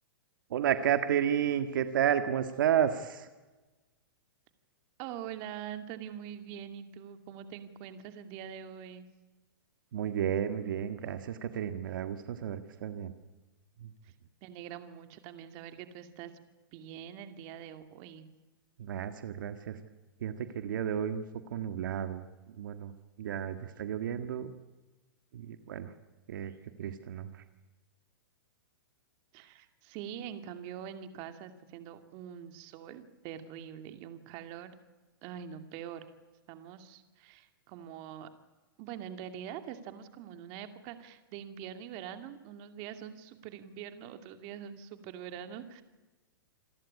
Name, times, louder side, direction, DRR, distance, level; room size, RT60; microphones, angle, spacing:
voice 1, 0.5-3.3 9.9-13.1 13.8-13.9 18.8-19.8 20.2-21.2 21.5-22.3 22.5-22.9 23.2-24.5 25.3-25.9 26.3-26.5 26.8-27.4, right 9 dB, 65° right, 9 dB, 1.7 m, -32 dB
voice 2, 5.0-9.1 14.0-14.1 14.4-16.3 16.7-18.3 29.3-34.7 35.2-36.1 36.5-38.3 38.8-45.8, right 9 dB, 35° right, 9 dB, 2.4 m, -44 dB
27.5 x 13.0 x 9.9 m, 1.2 s
hypercardioid pair, 145°, 11 cm